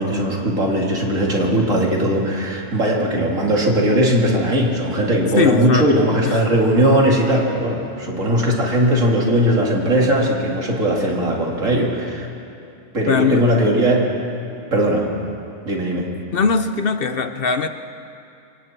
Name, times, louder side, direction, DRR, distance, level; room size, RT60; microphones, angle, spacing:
voice 1, 0.0-12.3 12.9-14.0 14.7-15.1 15.6-16.1, right 1 dB, 85° right, -2 dB, 3.1 m, -19 dB
voice 2, 5.4-5.9 6.3-6.4 13.1-13.5 16.3-17.7, left 5 dB, 55° left, 9 dB, 0.8 m, -20 dB
27.0 x 25.0 x 4.5 m, 2.6 s
omnidirectional pair, 1.3 m